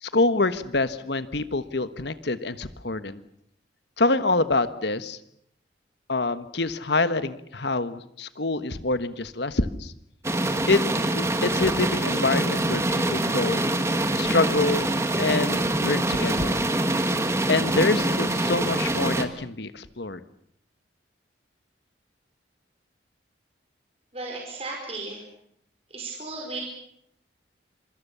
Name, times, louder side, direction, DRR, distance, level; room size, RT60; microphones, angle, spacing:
voice 1, 0.0-3.2 4.0-5.2 6.1-9.9 10.7-10.8 11.1-13.7 14.1-14.9 15.2-16.6 17.5-20.2, left 3 dB, 65° left, 12 dB, 1.3 m, -26 dB
sound 1, 10.2-19.3, right 1 dB, 15° right, 1.7 m, -25 dB
voice 2, 24.1-25.2 25.9-26.6, right 3 dB, 30° right, 0 dB, 5.1 m, -35 dB
26.0 x 24.5 x 7.0 m, 0.71 s
head